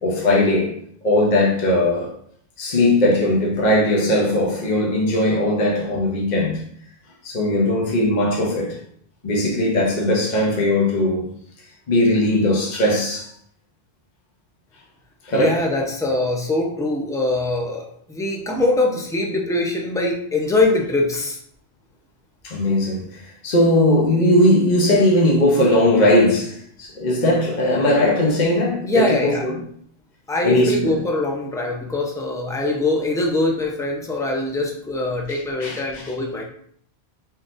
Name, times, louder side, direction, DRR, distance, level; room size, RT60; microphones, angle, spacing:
voice 1, 0.0-0.7 1.0-2.1 2.6-6.6 7.2-8.8 9.2-11.3 11.9-13.3 15.2-15.6 22.4-29.6 30.4-30.9 35.6-36.0, left 1 dB, 45° left, 0.9 m, -19 dB
voice 2, 15.3-21.4 28.8-29.5 30.3-36.4, left 2 dB, 5° left, 0.5 m, -22 dB
4.0 x 3.8 x 2.6 m
omnidirectional pair, 1.1 m